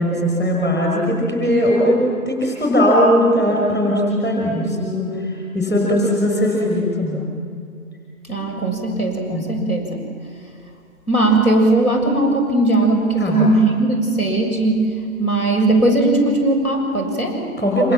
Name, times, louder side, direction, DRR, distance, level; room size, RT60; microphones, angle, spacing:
voice 1, 0.0-2.0 2.3-5.1 5.5-7.3 9.3-9.5 13.2-13.5 17.6-17.9, equal, 5° left, -2 dB, 5.6 m, -18 dB
voice 2, 8.3-10.1 11.1-17.4, right 2 dB, 80° left, 1 dB, 6.8 m, -18 dB
27.5 x 26.0 x 7.6 m, 2.3 s
figure-of-eight pair, 145°, 43 cm